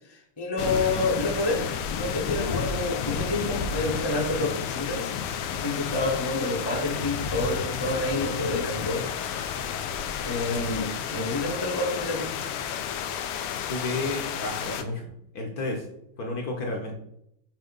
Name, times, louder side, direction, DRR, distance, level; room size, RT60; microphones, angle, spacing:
voice 1, 0.1-1.6 1.9-5.1 5.5-9.1 10.2-12.3, left 2 dB, 20° left, 0 dB, 0.6 m, -28 dB
sound 1, 0.6-14.8, left 7 dB, 90° left, 1.6 m, -31 dB
voice 2, 13.7-15.1 15.3-15.8 16.2-16.9, left 2 dB, 55° left, 0 dB, 1.2 m, -31 dB
7.6 x 2.8 x 5.3 m, 0.75 s
omnidirectional pair, 2.4 m